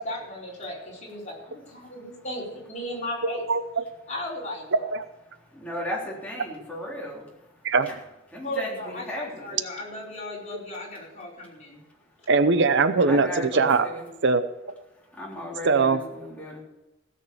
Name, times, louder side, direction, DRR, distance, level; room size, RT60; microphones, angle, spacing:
voice 1, 0.0-3.4 4.1-5.0 8.4-11.8, left 1 dB, 35° left, -4 dB, 4.8 m, -36 dB
voice 2, 1.8-2.3 5.3-8.0 8.3-9.6 11.4-11.5 11.8-12.0 13.0-14.1 14.9-16.6, left 1 dB, 5° left, -4 dB, 3.7 m, -36 dB
voice 3, 3.5-3.8 4.9-5.0 7.6-7.9 12.3-13.3 13.5-13.8 14.2-14.4 15.6-16.0, right 4 dB, 65° right, 11 dB, 0.7 m, -20 dB
16.5 x 6.7 x 7.1 m, 0.96 s
head